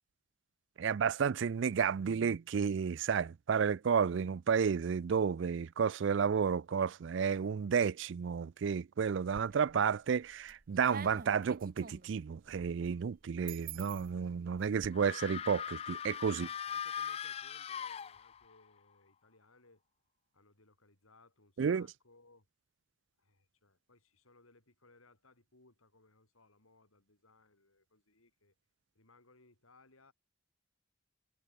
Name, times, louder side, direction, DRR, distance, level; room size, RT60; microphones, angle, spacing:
voice 1, 0.8-16.5 21.6-21.9, right 6 dB, 60° right, 0.4 m, -31 dB
sound 1, 9.1-9.8 10.2-14.9, right 6 dB, 40° right, 1.1 m, -48 dB
sound 2, 14.9-18.6, left 8 dB, 30° left, 0.3 m, -40 dB
voice 2, 16.3-19.8 20.3-22.5 23.2-28.5 28.9-30.1, left 3 dB, 90° left, 4.8 m, -64 dB
head